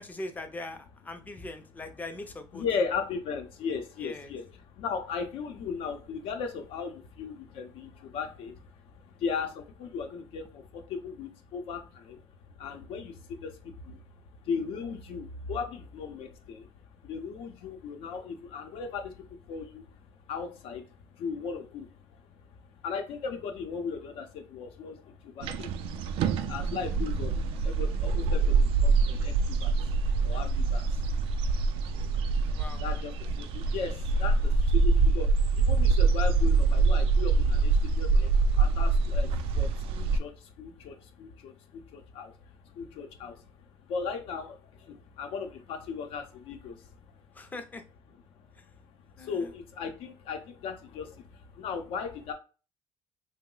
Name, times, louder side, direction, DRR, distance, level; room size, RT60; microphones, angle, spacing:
voice 1, 0.0-2.6 4.0-4.3 32.5-32.8 47.3-47.8 48.6-48.7 49.2-49.5, left 2 dB, 15° left, 7 dB, 0.5 m, -41 dB
voice 2, 2.5-47.5 48.3-52.3, left 5 dB, 75° left, 5 dB, 0.6 m, -38 dB
sound 1, 25.4-40.2, right 4 dB, 70° right, 0.4 m, -25 dB
2.9 x 2.1 x 3.7 m, 0.34 s
cardioid pair, 120°, 10 cm